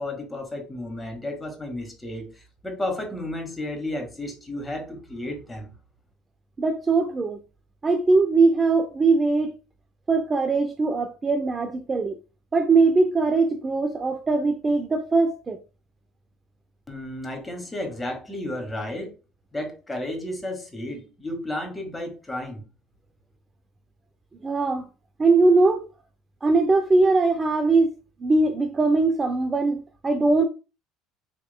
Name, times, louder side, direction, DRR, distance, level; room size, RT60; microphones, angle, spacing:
voice 1, 0.0-5.7 16.9-19.1 19.5-22.6, left 1 dB, 10° left, 1.7 m, -33 dB
voice 2, 6.6-7.4 7.8-9.6 10.1-12.2 12.5-15.6 24.4-24.9 25.2-25.9 26.4-27.9 28.2-30.4, right 3 dB, 25° right, 0.5 m, -21 dB
5.2 x 2.9 x 2.2 m
supercardioid pair, 90°, 0 cm